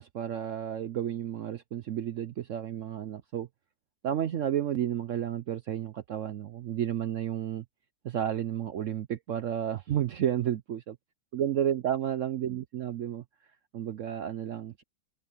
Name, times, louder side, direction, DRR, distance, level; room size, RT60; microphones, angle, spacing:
voice 1, 0.0-3.5 4.0-7.6 8.0-11.0 11.3-13.2 13.7-14.8, right 10 dB, 65° right, 0.8 m, -31 dB
omnidirectional pair, 1.9 m